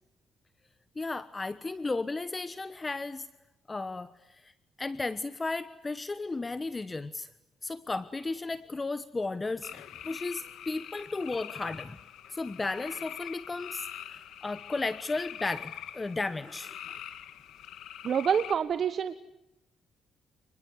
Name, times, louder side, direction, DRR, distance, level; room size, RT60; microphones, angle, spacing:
voice 1, 0.9-3.3 3.7-4.5 4.8-7.3 7.6-12.0 12.3-17.0, left 3 dB, 25° left, 14 dB, 1.2 m, -34 dB
sound 1, 9.6-18.6, left 10 dB, 80° left, 2.0 m, -44 dB
voice 2, 18.0-19.2, right 7 dB, 55° right, 11 dB, 1.3 m, -27 dB
29.0 x 21.0 x 9.8 m, 0.92 s
cardioid pair, 90°, 0 cm